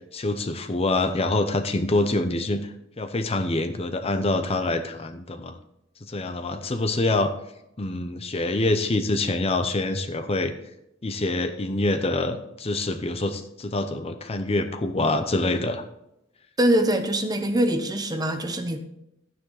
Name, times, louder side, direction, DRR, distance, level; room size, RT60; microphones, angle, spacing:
voice 1, 0.1-5.6 6.0-7.3 7.8-10.5 11.0-15.8, left 2 dB, 30° left, 8 dB, 0.7 m, -25 dB
voice 2, 16.6-18.8, right 1 dB, 20° right, 7 dB, 1.0 m, -23 dB
12.0 x 9.4 x 4.0 m, 0.83 s
head